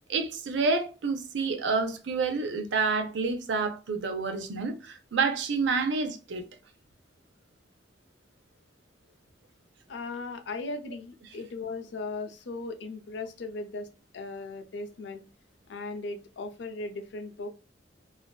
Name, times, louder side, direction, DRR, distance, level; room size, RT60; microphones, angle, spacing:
voice 1, 0.1-6.4, right 4 dB, 75° right, 0.5 m, -28 dB
voice 2, 9.9-15.2 15.7-17.5, left 3 dB, 70° left, 0.5 m, -37 dB
2.5 x 2.2 x 2.2 m
head